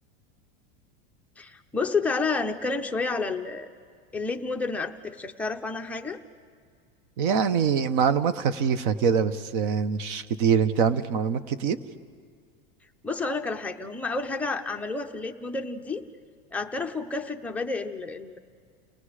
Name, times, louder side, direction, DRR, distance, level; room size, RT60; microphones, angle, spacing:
voice 1, 1.4-3.7 4.1-6.2 13.0-16.0 16.5-18.4, left 3 dB, 5° left, 3 dB, 0.5 m, -30 dB
voice 2, 7.2-11.8, right 6 dB, 55° right, 13 dB, 1.0 m, -24 dB
30.0 x 19.0 x 5.0 m, 2.1 s
supercardioid pair, 160°, 30 cm